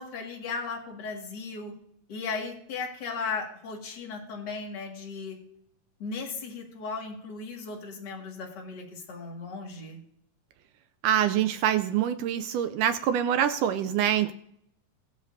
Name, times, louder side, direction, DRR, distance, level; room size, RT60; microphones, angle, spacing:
voice 1, 0.0-1.7 2.1-5.4 6.0-10.0, left 4 dB, 40° left, 0 dB, 2.0 m, -36 dB
voice 2, 11.0-14.3, right 10 dB, 80° right, 10 dB, 1.9 m, -25 dB
21.0 x 7.5 x 2.6 m, 0.72 s
omnidirectional pair, 3.9 m